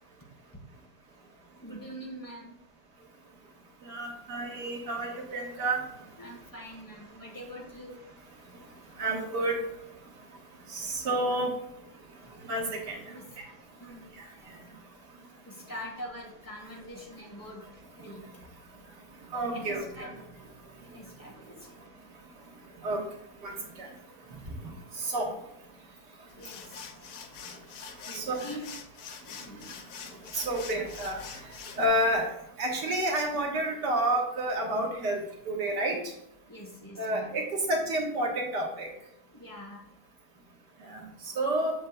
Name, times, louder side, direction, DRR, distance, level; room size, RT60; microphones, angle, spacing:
voice 1, 1.6-2.6 6.2-8.0 13.1-13.3 13.8-14.2 15.4-18.3 19.5-20.1 20.8-21.7 26.3-26.8 28.0-28.8 29.2-29.7 36.5-37.4 39.3-39.9 40.3-40.5, equal, 15° left, -1 dB, 1.4 m, -44 dB
voice 2, 3.8-5.8 9.0-9.6 10.7-11.5 12.5-13.0 14.2-14.3 19.3-20.1 22.8-23.0 23.4-23.9 24.6-25.3 28.1-28.5 30.4-31.2 31.8-32.3 32.6-35.2 35.5-36.0 37.0-38.9 40.9-41.0 41.4-41.7, right 1 dB, 90° right, 0 dB, 1.9 m, -29 dB
sound 1, 26.3-31.9, left 7 dB, 80° left, 1.3 m, -45 dB
7.6 x 6.6 x 2.3 m, 0.80 s
omnidirectional pair, 1.8 m